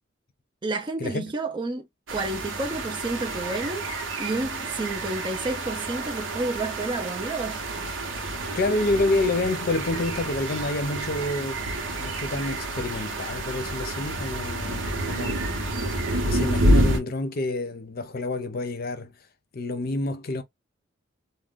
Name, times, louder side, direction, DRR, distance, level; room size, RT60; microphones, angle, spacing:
voice 1, 0.6-7.6, right 2 dB, 25° right, 0.4 m, -30 dB
sound 1, 2.1-17.0, right 1 dB, 75° right, 0.8 m, -28 dB
voice 2, 8.6-11.7 12.0-15.4 16.3-19.1 19.5-20.4, left 2 dB, 50° left, 0.6 m, -28 dB
2.4 x 2.2 x 3.6 m
head